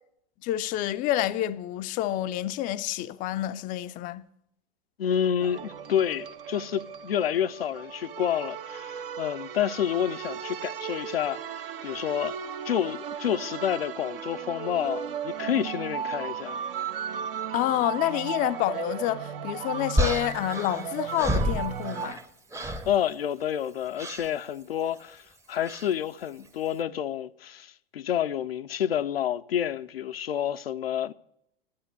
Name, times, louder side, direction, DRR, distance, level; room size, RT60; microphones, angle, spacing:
voice 1, 0.4-4.3 17.5-22.2, left 14 dB, 30° left, 0.4 m, -28 dB
voice 2, 5.0-12.4 12.7-16.6 22.9-31.1, left 10 dB, 75° left, 0.5 m, -29 dB
sound 1, 5.4-22.1, right 8 dB, 65° right, 1.0 m, -36 dB
sound 2, 20.0-22.2 22.5-22.9 24.0-24.3 25.6-25.9, equal, 10° right, 0.7 m, -29 dB
11.5 x 8.9 x 8.1 m
figure-of-eight pair, 95°, 30 cm